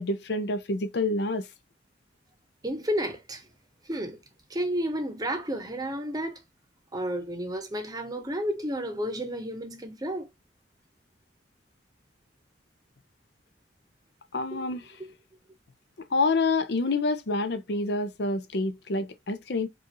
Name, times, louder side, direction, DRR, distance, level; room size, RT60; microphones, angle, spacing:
voice 1, 0.0-1.5 14.3-14.8 16.1-19.7, left 3 dB, 60° left, 0.6 m, -27 dB
voice 2, 2.6-3.5 3.8-4.2 4.5-6.4 6.9-10.3 14.5-14.7 15.0-15.1, equal, 20° right, 0.8 m, -31 dB
5.0 x 2.5 x 2.9 m
head